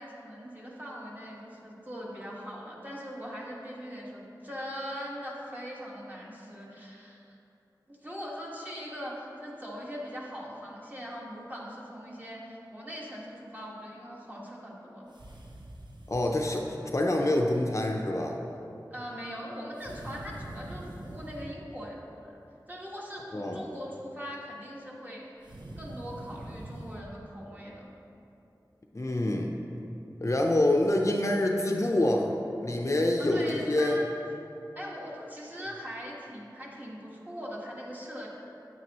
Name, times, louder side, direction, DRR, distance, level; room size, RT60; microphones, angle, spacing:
voice 1, 0.0-7.4 7.9-15.1 18.9-22.4 22.7-27.9 33.2-34.1 34.7-38.3, equal, 25° right, -4 dB, 1.6 m, -41 dB
sound 1, 15.1-16.6 19.8-21.6 25.4-27.0, right 1 dB, 75° right, 0.8 m, -44 dB
voice 2, 16.1-18.4 23.3-23.6 28.9-29.5 30.2-32.3 32.6-34.0, left 1 dB, 40° left, 1 dB, 0.6 m, -26 dB
9.2 x 8.7 x 3.0 m, 2.8 s
wide cardioid pair, 55°, 8 cm